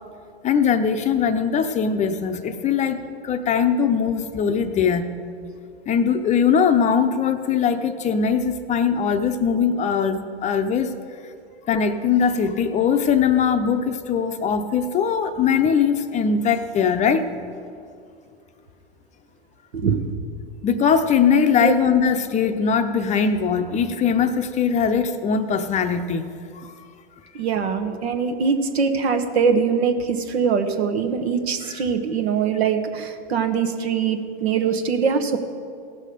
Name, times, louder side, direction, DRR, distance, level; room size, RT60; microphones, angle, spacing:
voice 1, 0.4-5.1 5.9-10.9 11.7-17.3 20.6-26.2 26.6-26.7, left 6 dB, 25° left, 8 dB, 0.6 m, -21 dB
voice 2, 27.3-35.4, right 6 dB, 85° right, 7 dB, 1.2 m, -22 dB
17.0 x 6.5 x 5.1 m, 2.3 s
hypercardioid pair, 120°, 31 cm